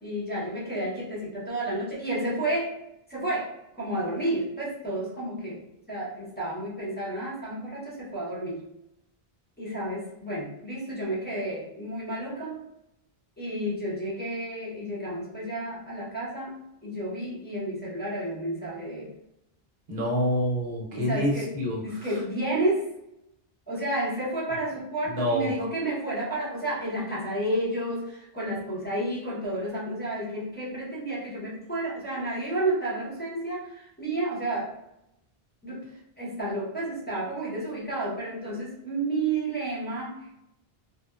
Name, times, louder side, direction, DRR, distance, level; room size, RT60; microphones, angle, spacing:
voice 1, 0.0-2.7 3.1-5.6 5.9-8.6 9.6-12.6 13.4-16.6 16.8-19.1 20.9-21.5 21.8-22.9 23.7-34.7 35.6-35.8 36.2-40.4, right 1 dB, 10° left, -8 dB, 0.7 m, -31 dB
voice 2, 19.9-21.8 25.1-25.5, equal, 60° right, -3 dB, 0.8 m, -27 dB
2.8 x 2.0 x 2.3 m, 0.85 s
omnidirectional pair, 1.0 m